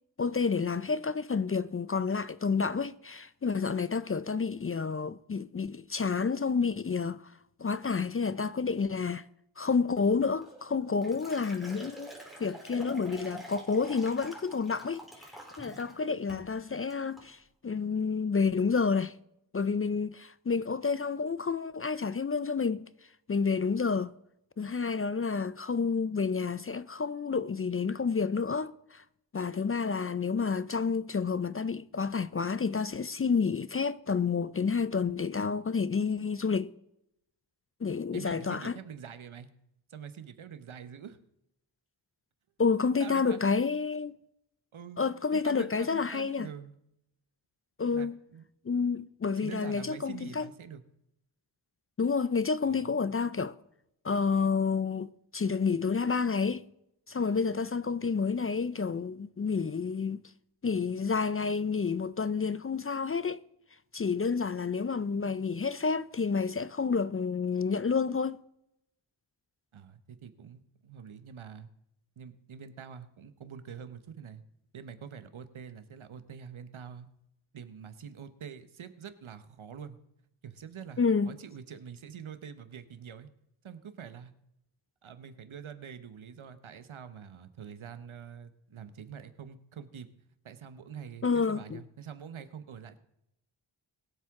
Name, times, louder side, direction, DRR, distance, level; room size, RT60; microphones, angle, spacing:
voice 1, 0.2-7.3 7.6-9.2 9.6-15.3 15.6-19.1 19.5-22.9 23.3-24.1 24.6-29.0 29.3-36.7 37.8-38.8 42.6-44.2 45.0-46.5 47.8-48.2 48.6-50.5 52.0-53.6 54.0-56.6 57.1-60.2 60.6-63.4 63.9-68.4 81.0-81.4 91.2-91.8, left 5 dB, 30° left, 0.4 m, -29 dB
Liquid, 10.4-16.0 16.3-16.5 16.9-17.3, right 1 dB, ahead, 3.3 m, -47 dB
voice 2, 38.1-39.5 39.9-41.2 43.0-43.6 44.7-45.0 45.3-46.8 47.9-48.5 49.4-50.8 52.6-53.3 69.7-71.7 72.2-74.4 74.7-77.1 77.5-80.0 80.4-83.3 83.6-84.3 85.0-90.1 90.4-93.0, right 7 dB, 90° right, 1.0 m, -45 dB
21.0 x 7.6 x 3.6 m
wide cardioid pair, 90°, 47 cm